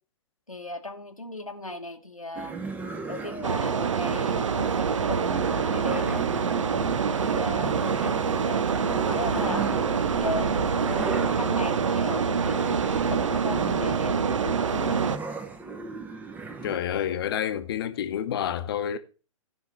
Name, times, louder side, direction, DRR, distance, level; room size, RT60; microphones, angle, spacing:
voice 1, 0.5-2.6 3.1-6.3 7.2-15.0, left 2 dB, 90° left, 1.2 m, -37 dB
sound 1, 2.3-16.8, right 3 dB, 10° right, 0.8 m, -37 dB
sound 2, 3.4-15.2, right 6 dB, 65° right, 0.8 m, -26 dB
voice 2, 16.6-19.0, left 9 dB, 45° left, 0.9 m, -29 dB
12.5 x 5.8 x 4.5 m
figure-of-eight pair, 120°, 17 cm